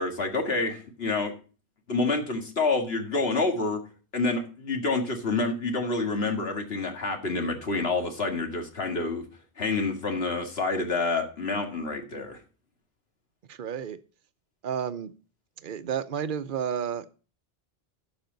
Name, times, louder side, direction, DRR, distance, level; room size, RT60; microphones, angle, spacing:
voice 1, 0.0-1.3 1.9-3.8 4.1-9.2 9.6-12.4, left 3 dB, 80° left, 4 dB, 2.2 m, -28 dB
voice 2, 13.5-14.0 14.6-15.1 15.6-17.1, right 8 dB, 55° right, 13 dB, 0.9 m, -31 dB
11.5 x 7.3 x 3.9 m, 0.36 s
omnidirectional pair, 1.0 m